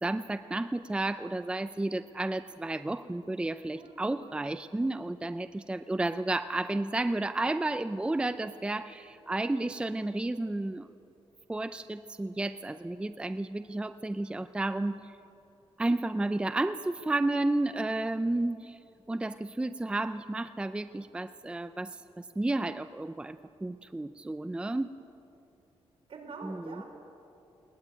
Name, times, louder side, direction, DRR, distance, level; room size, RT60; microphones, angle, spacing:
voice 1, 0.0-10.9 11.5-15.1 15.8-18.8 19.1-24.9 26.4-26.8, right 2 dB, 10° right, 11 dB, 0.5 m, -32 dB
voice 2, 3.7-4.4 26.1-26.8, right 4 dB, 70° right, 1 dB, 5.0 m, -45 dB
20.5 x 19.5 x 9.2 m, 2.7 s
wide cardioid pair, 150°, 10 cm